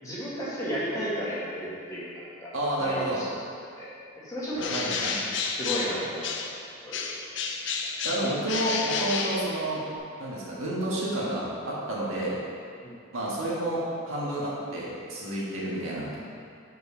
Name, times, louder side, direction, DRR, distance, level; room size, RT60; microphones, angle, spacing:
voice 1, 0.0-2.5 2.8-3.3 3.7-3.9 4.2-5.1 5.5-7.2 12.8-12.9, equal, 15° left, -9 dB, 1.6 m, -34 dB
voice 2, 2.5-3.2 4.7-5.2 8.0-9.8 10.2-12.4 13.1-16.2, right 1 dB, 80° right, -6 dB, 1.6 m, -30 dB
Bird, 4.5-6.6 6.9-10.0, left 5 dB, 60° left, 0.5 m, -31 dB
5.2 x 4.6 x 5.6 m, 2.4 s
head